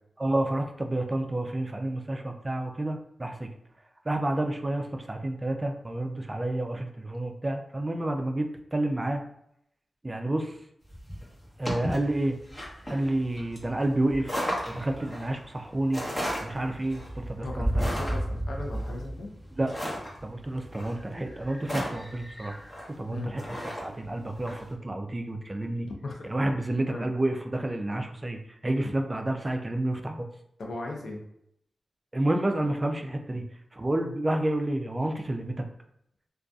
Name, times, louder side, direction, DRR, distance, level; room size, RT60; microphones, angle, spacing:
voice 1, 0.2-3.5 4.1-9.2 10.0-10.6 11.6-12.4 12.9-14.4 14.7-16.0 16.4-17.9 19.5-19.7 20.2-22.5 23.0-25.9 26.2-30.3 32.1-33.4 33.7-35.5, right 1 dB, 25° right, 4 dB, 0.3 m, -29 dB
sound 1, 10.9-24.6, equal, 25° left, 0.9 m, -34 dB
voice 2, 17.4-19.3 23.1-23.3 25.9-26.3 26.9-27.1 30.6-31.2, left 2 dB, 80° left, 0 dB, 0.6 m, -37 dB
2.5 x 2.3 x 2.3 m, 0.74 s
wide cardioid pair, 75°, 0 cm